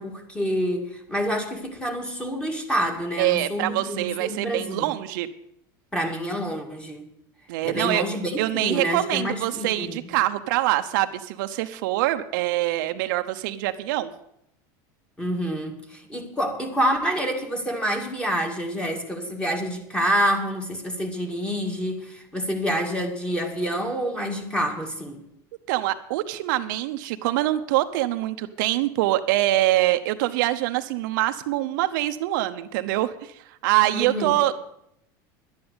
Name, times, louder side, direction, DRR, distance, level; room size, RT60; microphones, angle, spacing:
voice 1, 0.0-4.9 5.9-7.0 7.6-10.0 15.2-25.2 33.9-34.3, equal, 10° left, 3 dB, 2.3 m, -27 dB
voice 2, 3.2-5.3 7.5-8.0 8.4-14.1 25.7-33.3 33.6-34.6, right 16 dB, 75° right, 8 dB, 0.8 m, -24 dB
11.5 x 9.6 x 8.1 m, 0.78 s
supercardioid pair, 140°, 11 cm